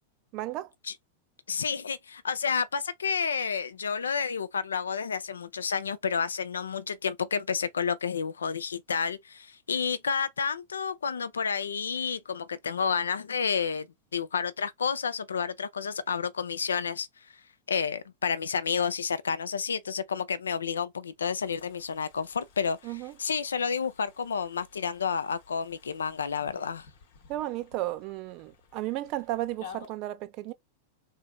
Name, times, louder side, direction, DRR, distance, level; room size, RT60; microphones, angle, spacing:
voice 1, 0.3-0.7 22.8-23.1 27.3-30.5, right 15 dB, 40° right, 0.3 m, -34 dB
voice 2, 1.5-13.9 14.1-17.1 17.7-26.9, left 6 dB, 70° left, 0.4 m, -30 dB
sound 1, 21.4-29.9, left 7 dB, 55° left, 0.8 m, -53 dB
3.8 x 2.5 x 2.2 m
figure-of-eight pair, 95°, 0 cm